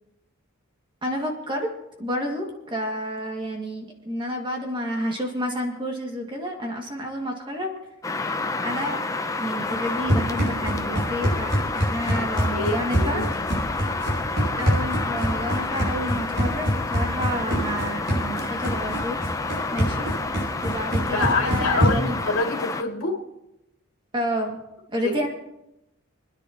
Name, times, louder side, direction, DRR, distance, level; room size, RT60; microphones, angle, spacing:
voice 1, 1.0-1.7 2.0-7.7 8.6-9.0 9.4-13.8 14.6-19.2 19.7-20.1 20.6-22.2 24.1-24.6 24.9-25.3, equal, 20° right, 1 dB, 2.1 m, -30 dB
sound 1, 8.0-22.8, left 3 dB, 15° left, 0.6 m, -29 dB
Run, 9.7-22.2, equal, 55° right, 6.0 m, -26 dB
voice 2, 12.5-13.5 21.1-23.2 25.0-25.2, left 3 dB, 75° left, 1 dB, 2.5 m, -26 dB
29.5 x 10.0 x 2.9 m, 0.90 s
head